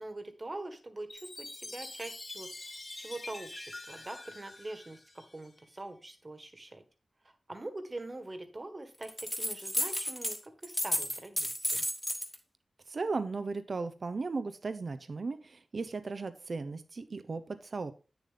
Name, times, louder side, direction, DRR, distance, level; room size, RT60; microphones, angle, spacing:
voice 1, 0.0-6.8 7.2-11.8, right 2 dB, 35° right, 8 dB, 1.5 m, -44 dB
Chime, 1.1-5.6, left 2 dB, 35° left, 1.3 m, -46 dB
sound 1, 9.0-10.4 10.6-12.4, equal, 5° left, 1.3 m, -32 dB
voice 2, 12.9-17.9, right 4 dB, 60° right, 11 dB, 0.6 m, -36 dB
9.2 x 7.0 x 3.7 m, 0.33 s
wide cardioid pair, 100°, 0 cm